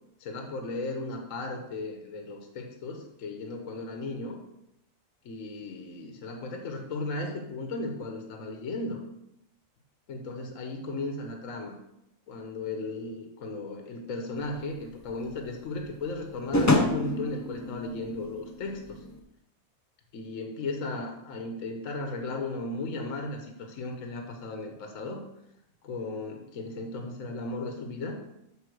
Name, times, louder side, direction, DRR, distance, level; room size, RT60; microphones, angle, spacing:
voice 1, 0.2-4.4 5.2-9.0 10.1-11.7 12.3-19.0 20.1-25.2 25.8-28.2, left 2 dB, 60° left, 3 dB, 1.2 m, -36 dB
sound 1, 14.5-19.2, left 2 dB, 25° left, 0.3 m, -29 dB
8.3 x 3.8 x 6.3 m, 0.83 s
omnidirectional pair, 1.6 m